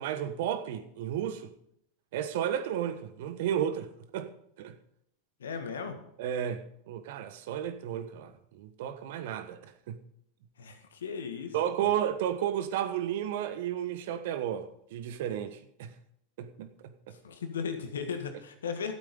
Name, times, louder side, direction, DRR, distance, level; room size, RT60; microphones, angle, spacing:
voice 1, 0.0-1.5 2.1-3.9 4.1-4.3 4.6-4.7 6.2-10.0 11.5-15.9 16.4-17.2, right 10 dB, 65° right, 1.2 m, -33 dB
voice 2, 5.4-6.0 10.6-11.5 17.2-18.9, left 6 dB, 80° left, 1.7 m, -36 dB
12.5 x 8.3 x 5.4 m
hypercardioid pair, 90°, 0 cm